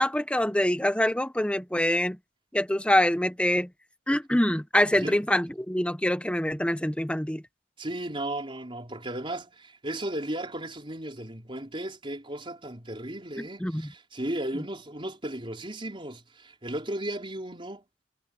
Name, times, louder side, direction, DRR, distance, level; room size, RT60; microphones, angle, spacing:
voice 1, 0.0-2.2 2.5-3.7 4.1-7.4 13.4-13.9, left 1 dB, 5° left, 1.1 m, -25 dB
voice 2, 7.8-17.8, right 1 dB, 30° right, 4.4 m, -35 dB
head